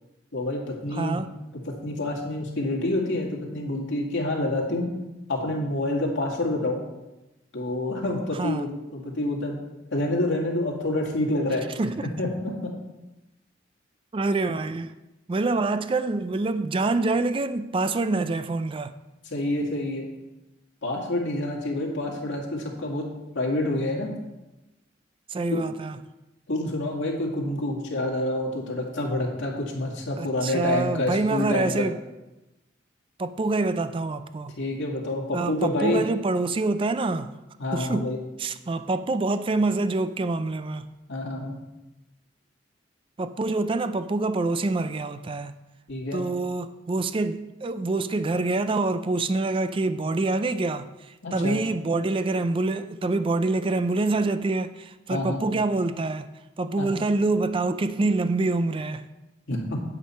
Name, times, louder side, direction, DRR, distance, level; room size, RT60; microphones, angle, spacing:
voice 1, 0.3-1.2 1.8-4.9 5.3-6.8 7.5-9.6 9.9-11.7 12.2-12.7 19.3-20.1 20.8-23.1 23.3-24.1 25.5-25.6 26.5-31.8 34.6-36.0 37.6-38.2 41.1-41.5 45.9-46.2 51.2-51.6 55.1-55.4 56.8-56.9 59.5-59.8, left 1 dB, 85° left, 2.1 m, -27 dB
voice 2, 0.9-1.3 8.4-8.7 11.8-12.1 14.1-14.9 15.3-18.9 25.3-26.0 30.2-32.0 33.2-34.5 35.3-37.3 37.7-38.1 38.4-40.9 43.2-45.6 46.1-50.9 51.3-56.3 56.6-59.1, right 3 dB, 30° right, 0.4 m, -26 dB
8.4 x 8.4 x 4.4 m
head